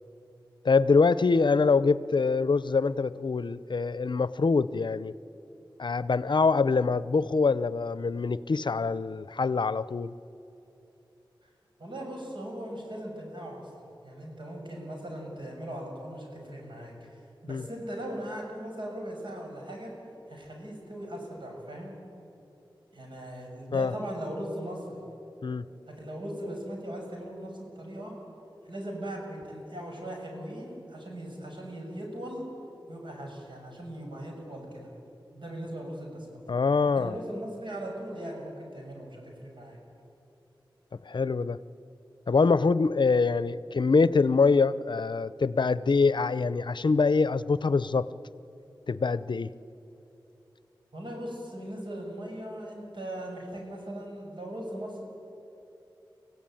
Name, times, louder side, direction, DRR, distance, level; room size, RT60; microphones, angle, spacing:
voice 1, 0.6-5.1 5.8-10.1 17.5-17.6 23.7-23.9 25.4-25.6 36.5-37.1 41.1-41.6 42.3-48.1 48.9-49.5, left 4 dB, 60° left, 17 dB, 0.7 m, -24 dB
voice 2, 11.8-13.7 14.0-19.9 20.3-21.9 22.9-25.0 25.9-28.1 28.6-32.4 32.9-34.9 35.3-36.4 36.9-39.8 50.9-55.0, right 1 dB, 65° right, 0 dB, 6.8 m, -39 dB
25.0 x 16.0 x 9.2 m, 3.0 s
cardioid pair, 50°, 9 cm